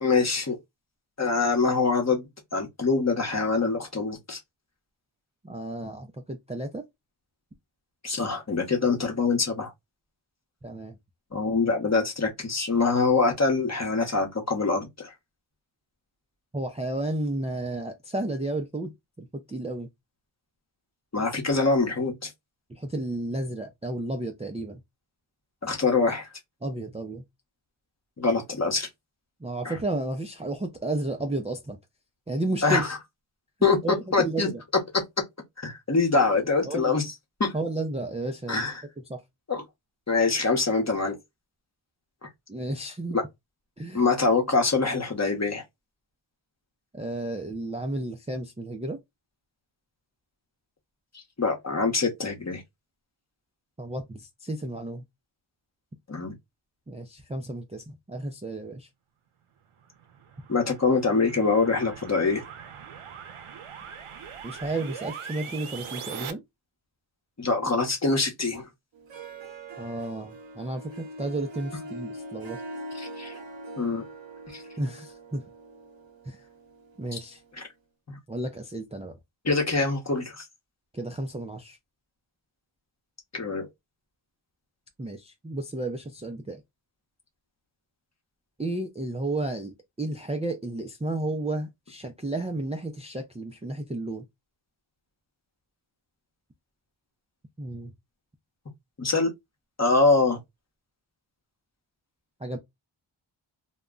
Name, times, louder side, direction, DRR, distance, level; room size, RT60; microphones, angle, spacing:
voice 1, 0.0-0.6 1.2-2.2 2.5-4.4 8.0-9.7 11.3-15.1 21.1-22.3 25.6-26.3 28.2-28.9 29.6-29.7 32.6-32.9 33.6-33.8 34.1-34.5 35.6-37.1 37.4-37.5 38.5-38.8 39.5-39.6 40.1-41.2 42.2-42.3 43.9-45.6 51.1-52.6 56.1-56.3 60.5-62.4 67.4-68.7 72.9-73.3 73.8-74.0 74.5-74.6 77.1-77.2 78.1-78.2 79.4-80.4 83.3-83.7 99.0-99.3 99.8-100.4, left 4 dB, 35° left, 0.9 m, -24 dB
voice 2, 5.4-6.8 10.6-11.0 16.5-19.9 22.7-24.8 26.6-27.2 29.4-31.8 32.3-32.8 33.8-34.6 36.7-37.0 37.5-38.6 39.1-39.2 42.5-43.2 43.8-44.0 46.9-49.0 53.8-55.0 56.9-58.9 64.4-66.4 69.8-72.6 74.5-75.4 76.3-76.4 77.0-77.4 78.3-79.2 80.9-81.8 85.0-86.6 88.6-89.7 90.0-94.3 97.6-97.9 102.4-102.6, right 2 dB, 15° right, 0.4 m, -32 dB
sound 1, 59.8-66.3, right 7 dB, 80° right, 0.6 m, -41 dB
Harp, 68.9-77.5, right 1 dB, 60° right, 0.9 m, -42 dB
2.3 x 2.1 x 3.6 m
wide cardioid pair, 65°, 50 cm